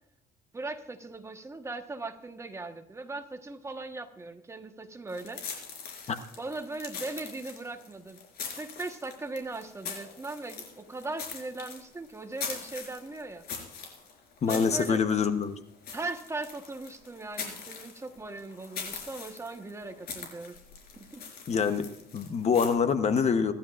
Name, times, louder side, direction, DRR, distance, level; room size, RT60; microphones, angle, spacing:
voice 1, 0.5-5.4 5.8-6.0 6.4-8.2 8.6-13.5 14.5-15.0 15.9-20.6 21.0-21.3, right 2 dB, 15° right, 6 dB, 1.3 m, -39 dB
sound 1, 5.1-22.7, left 6 dB, 65° left, 4.6 m, -42 dB
voice 2, 14.4-15.6 21.5-21.9 22.1-23.5, left 6 dB, 40° left, 9 dB, 1.0 m, -25 dB
25.5 x 12.0 x 2.5 m, 0.77 s
cardioid pair, 110°, 17 cm